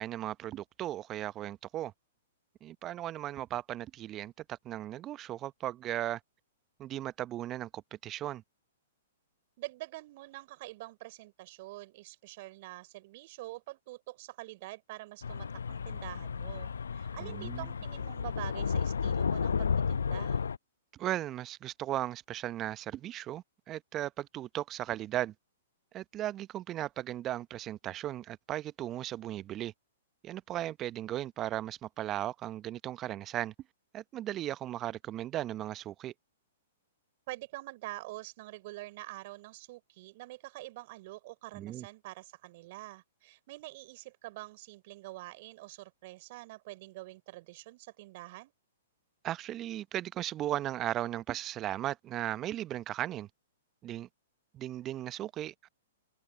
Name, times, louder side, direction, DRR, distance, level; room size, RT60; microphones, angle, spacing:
voice 1, 0.0-1.9 2.6-6.2 6.8-8.4 17.2-17.7 21.0-25.3 25.9-29.7 30.2-33.5 33.9-36.1 41.5-41.9 49.2-53.3 53.8-54.1 54.5-55.7, right 13 dB, 30° right, 0.9 m, -36 dB
voice 2, 9.6-20.4 37.3-48.5, right 19 dB, 50° right, 5.1 m, -46 dB
sound 1, 15.2-20.6, left 6 dB, 75° left, 0.6 m, -32 dB
figure-of-eight pair, 115°, 0 cm